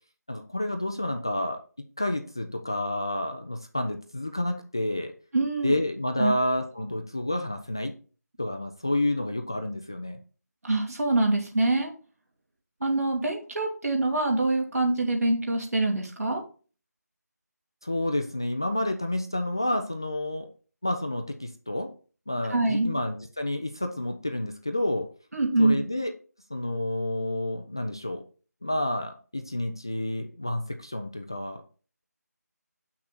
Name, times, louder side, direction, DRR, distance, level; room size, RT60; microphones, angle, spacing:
voice 1, 0.3-1.6 2.0-5.1 5.6-7.9 8.4-10.2 17.8-20.5 20.8-21.9 22.3-25.1 25.6-26.1 26.5-28.2 28.6-31.6, left 1 dB, 15° left, 6 dB, 0.3 m, -29 dB
voice 2, 5.3-5.8 6.2-6.3 10.6-11.9 12.8-16.4 22.5-22.9 25.3-25.8, right 2 dB, 60° right, 1 dB, 2.8 m, -25 dB
8.5 x 6.1 x 4.1 m, 0.37 s
figure-of-eight pair, 165°, 9 cm